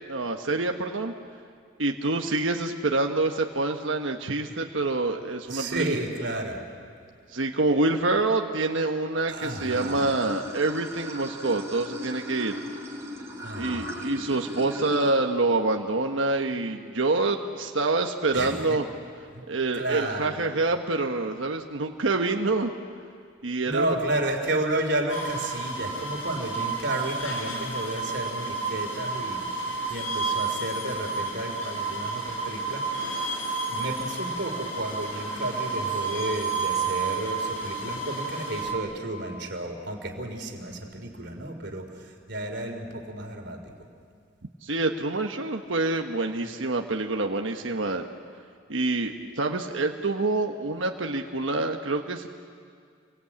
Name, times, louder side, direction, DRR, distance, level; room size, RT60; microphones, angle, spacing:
voice 1, 0.1-1.1 1.8-5.9 7.3-12.6 13.6-18.8 19.5-22.7 23.4-23.9 44.6-48.1 48.7-52.3, right 2 dB, 75° right, 3 dB, 1.2 m, -26 dB
voice 2, 5.5-6.6 9.3-10.0 13.4-13.9 18.3-18.8 19.3-19.4 19.7-20.4 23.7-33.2 33.7-43.7, right 1 dB, 60° right, 4 dB, 3.6 m, -32 dB
Water / Sink (filling or washing), 9.4-15.1, left 1 dB, 15° right, 4.3 m, -37 dB
sound 1, 25.1-38.7, right 4 dB, 85° left, 4.4 m, -31 dB
29.0 x 23.5 x 8.7 m, 2.2 s
head